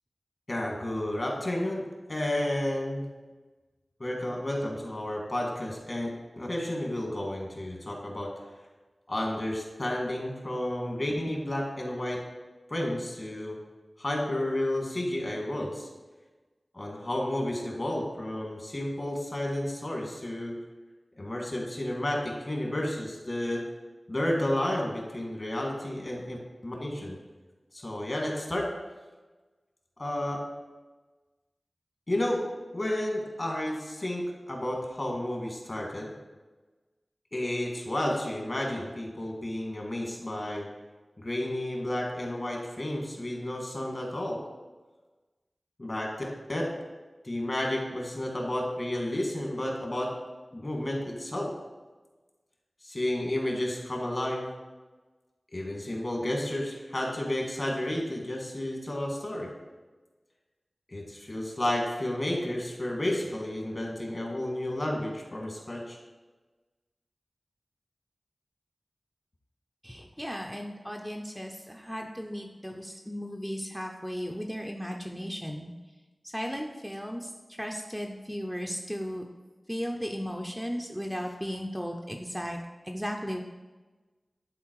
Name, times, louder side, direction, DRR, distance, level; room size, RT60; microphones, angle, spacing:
voice 1, 0.5-3.1 4.0-6.1 6.4-8.3 9.1-12.2 12.7-13.6 14.0-15.9 16.7-20.6 21.2-23.7 24.1-26.4 26.6-27.2 27.7-28.7 30.0-30.4 32.1-32.4 32.7-36.1 37.3-40.7 41.2-44.4 45.8-46.1 46.5-46.6 47.2-50.1 50.5-51.5 52.8-54.5 55.5-59.5 60.9-66.0, left 1 dB, 45° left, 0 dB, 2.1 m, -31 dB
voice 2, 69.8-75.7 76.2-77.3 77.6-79.2 79.7-83.4, equal, ahead, 1 dB, 0.6 m, -36 dB
11.0 x 4.3 x 4.8 m, 1.2 s
wide cardioid pair, 80°, 0 cm